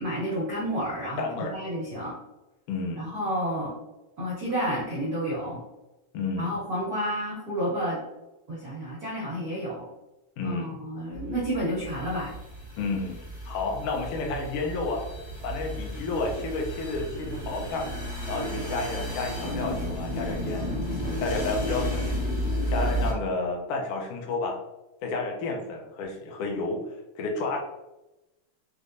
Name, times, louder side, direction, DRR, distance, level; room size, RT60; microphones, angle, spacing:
voice 1, 0.0-2.2 3.0-3.7 4.2-5.6 6.4-8.0 8.5-9.9 10.4-12.3, equal, 50° right, -7 dB, 1.1 m, -30 dB
voice 2, 1.2-1.6 2.7-3.1 6.1-6.5 10.4-10.8 12.8-13.2 13.5-15.0 15.4-17.9 18.3-20.8 21.2-22.0 22.7-24.6 25.0-26.9 27.2-27.6, left 3 dB, 75° left, 1 dB, 1.4 m, -31 dB
sound 1, 11.1-23.1, equal, 35° left, 1.2 m, -32 dB
5.1 x 2.9 x 2.6 m, 0.98 s
omnidirectional pair, 3.3 m